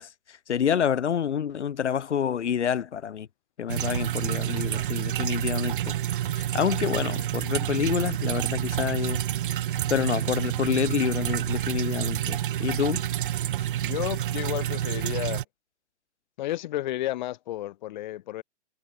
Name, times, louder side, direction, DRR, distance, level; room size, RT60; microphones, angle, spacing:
voice 1, 0.0-3.3 3.6-6.0 6.3-9.2 9.9-13.0, left 8 dB, 70° left, 2.5 m, -28 dB
sound 1, 3.7-15.4, right 12 dB, 45° right, 1.4 m, -28 dB
voice 2, 13.8-15.4 16.4-18.4, left 14 dB, 40° left, 1.9 m, -32 dB
hypercardioid pair, 155°, 36 cm